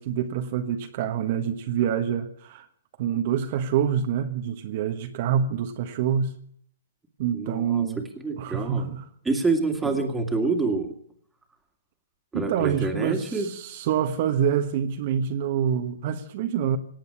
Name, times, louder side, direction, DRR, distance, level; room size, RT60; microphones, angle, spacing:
voice 1, 0.0-2.7 3.0-6.3 7.2-8.1 8.4-9.1 9.8-10.1 12.3-16.8, right 8 dB, 45° right, 6 dB, 1.3 m, -26 dB
voice 2, 7.3-7.9 8.2-8.9 9.2-10.9 12.3-13.5, right 3 dB, 5° right, 4 dB, 2.2 m, -27 dB
18.0 x 8.0 x 10.0 m, 0.64 s
hypercardioid pair, 140°, 0 cm